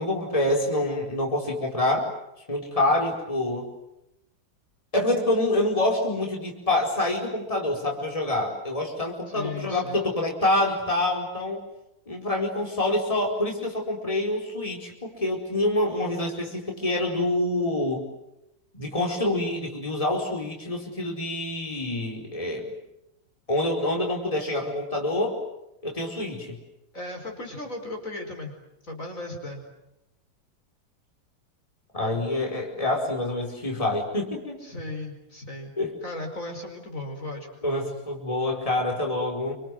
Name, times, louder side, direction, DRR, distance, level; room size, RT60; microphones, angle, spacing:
voice 1, 0.0-2.0 2.5-3.7 4.9-11.6 12.1-18.0 18.7-22.7 23.5-25.4 25.8-26.6 31.9-34.6 35.8-35.9 37.6-39.5, left 1 dB, 15° left, 0 dB, 4.9 m, -26 dB
voice 2, 9.3-10.0 26.9-28.5 28.8-29.6 32.0-32.2 34.6-35.7 36.0-37.5, left 2 dB, 40° left, 2 dB, 5.2 m, -36 dB
29.0 x 26.0 x 7.9 m, 0.88 s
omnidirectional pair, 2.0 m